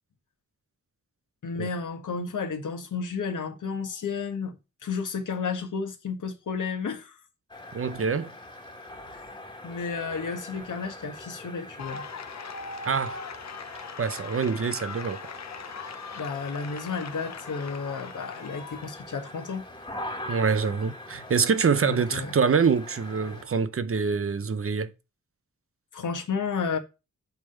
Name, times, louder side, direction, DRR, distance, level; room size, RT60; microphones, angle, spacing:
voice 1, 1.4-4.6 4.8-7.1 9.1-9.2 9.6-12.0 16.1-19.6 21.8-22.3 25.9-26.8, left 5 dB, 85° left, 1.5 m, -32 dB
sound 1, 7.5-23.4, left 1 dB, 15° left, 1.8 m, -43 dB
voice 2, 7.7-8.3 12.8-13.2 14.0-15.2 20.3-24.9, right 5 dB, 45° right, 0.7 m, -25 dB
sound 2, 11.8-19.0, left 5 dB, 65° left, 0.9 m, -40 dB
8.1 x 3.6 x 6.6 m
wide cardioid pair, 125°, 30 cm